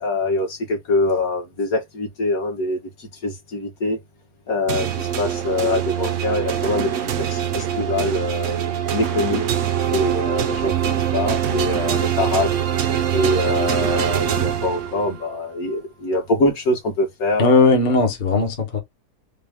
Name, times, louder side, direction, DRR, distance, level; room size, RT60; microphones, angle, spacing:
voice 1, 0.0-4.0 4.5-6.9 7.2-8.6 8.9-9.5 9.9-10.7 11.1-12.5 13.1-17.6, left 2 dB, 60° left, 1.7 m, -24 dB
sound 1, 4.7-15.3, right 9 dB, 60° right, 0.9 m, -23 dB
voice 2, 17.4-18.8, left 3 dB, 35° left, 0.9 m, -17 dB
3.6 x 2.3 x 3.4 m
omnidirectional pair, 1.7 m